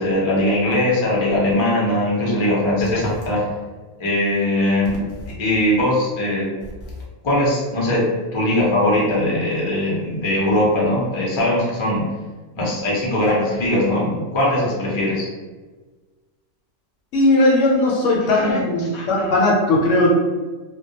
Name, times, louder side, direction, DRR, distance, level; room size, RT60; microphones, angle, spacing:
voice 1, 0.0-3.4 4.0-5.1 5.4-6.5 7.2-12.0 12.6-15.3 18.3-18.6 18.9-19.3, left 1 dB, 40° left, -6 dB, 0.4 m, -20 dB
voice 2, 17.1-20.1, left 2 dB, 70° left, -3 dB, 0.8 m, -17 dB
2.2 x 2.1 x 2.7 m, 1.3 s
omnidirectional pair, 1.5 m